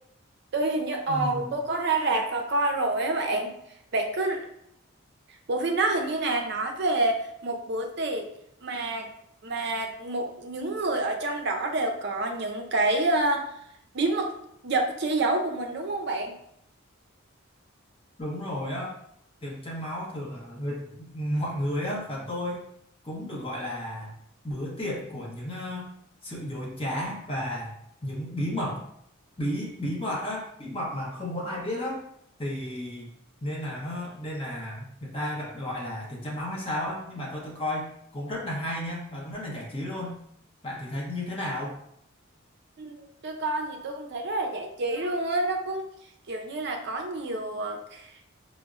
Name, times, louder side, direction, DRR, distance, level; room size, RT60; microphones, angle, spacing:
voice 1, 0.5-3.5 3.9-4.4 5.5-8.3 8.6-9.1 9.4-13.5 13.9-14.3 14.6-16.3 42.8-45.9 46.3-48.1, right 2 dB, 55° right, 3 dB, 0.4 m, -28 dB
voice 2, 1.1-1.5 18.2-18.9 19.4-22.6 23.0-24.1 24.4-25.9 26.2-27.7 28.0-28.8 29.4-32.0 32.4-33.1 33.4-40.2 40.6-41.8, left 1 dB, 25° left, -4 dB, 0.7 m, -33 dB
4.9 x 2.0 x 2.3 m, 0.73 s
head